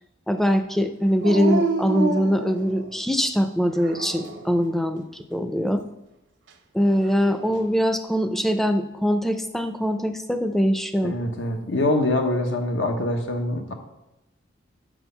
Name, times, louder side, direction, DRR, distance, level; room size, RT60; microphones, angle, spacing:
voice 1, 0.3-5.8 6.7-11.1, equal, ahead, 7 dB, 0.4 m, -22 dB
Dog, 1.2-3.1 3.7-4.5 6.8-7.7, right 3 dB, 75° right, 0.7 m, -28 dB
voice 2, 11.0-13.7, left 2 dB, 85° left, 4 dB, 1.1 m, -24 dB
6.2 x 6.1 x 5.6 m, 0.95 s
head